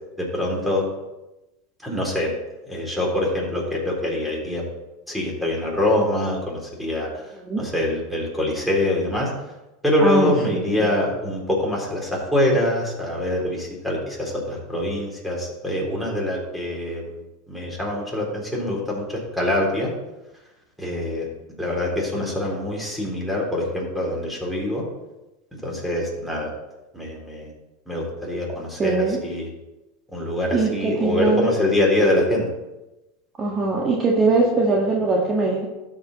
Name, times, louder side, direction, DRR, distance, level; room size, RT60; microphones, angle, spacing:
voice 1, 0.2-0.9 1.8-2.3 2.7-4.6 5.1-9.3 9.8-17.2 17.5-19.9 20.8-21.3 21.6-24.8 25.5-26.5 26.9-27.5 27.9-29.5 30.1-32.5, left 1 dB, ahead, -3 dB, 3.7 m, -24 dB
voice 2, 10.0-10.6 28.8-29.2 30.5-31.5 33.4-35.7, right 3 dB, 25° right, -2 dB, 1.6 m, -21 dB
13.0 x 5.3 x 4.2 m, 1.0 s
hypercardioid pair, 100°, 0 cm